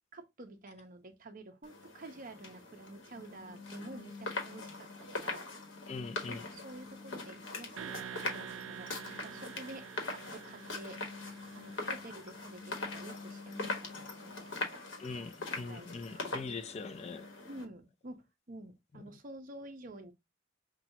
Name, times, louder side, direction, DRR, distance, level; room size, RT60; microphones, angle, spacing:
voice 1, 0.1-5.4 5.9-8.9 9.2-11.0 11.5-14.8 15.4-15.9 16.1-16.3 17.5-20.1, right 2 dB, 45° right, 0.8 m, -50 dB
sound 1, 1.6-17.6, left 3 dB, 75° left, 1.3 m, -42 dB
voice 2, 5.9-6.5 15.0-17.3, left 4 dB, 35° left, 0.4 m, -42 dB
sound 2, 7.8-12.7, right 8 dB, 75° right, 0.4 m, -47 dB
5.7 x 2.4 x 2.8 m
head